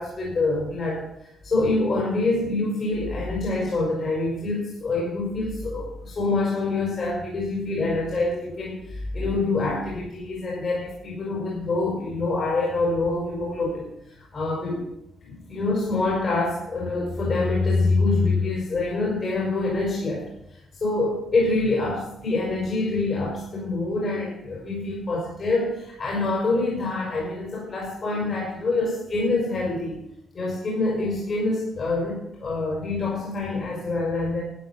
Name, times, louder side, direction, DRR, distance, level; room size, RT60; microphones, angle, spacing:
voice 1, 0.0-14.9 15.2-20.3 20.7-30.0 30.3-34.4, left 3 dB, 45° left, -3 dB, 5.1 m, -26 dB
12.0 x 9.5 x 7.4 m, 0.81 s
cardioid pair, 95°, 0 cm